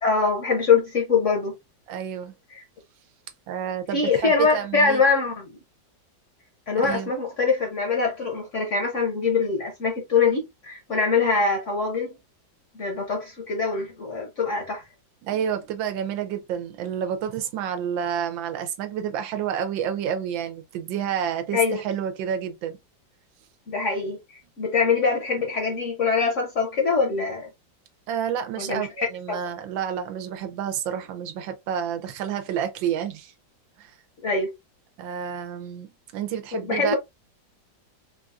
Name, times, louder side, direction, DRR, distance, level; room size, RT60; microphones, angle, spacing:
voice 1, 0.0-1.5 2.5-2.6 3.9-5.6 6.7-12.1 12.7-14.8 21.5-21.8 23.7-27.5 28.6-29.4 34.2-34.5 36.5-37.0, left 5 dB, 55° left, 0.9 m, -23 dB
voice 2, 1.9-2.3 3.5-5.0 6.8-7.1 15.2-22.8 28.1-33.3 33.8-33.9 35.0-37.0, right 9 dB, 85° right, 1.4 m, -29 dB
3.9 x 2.4 x 2.4 m
omnidirectional pair, 2.0 m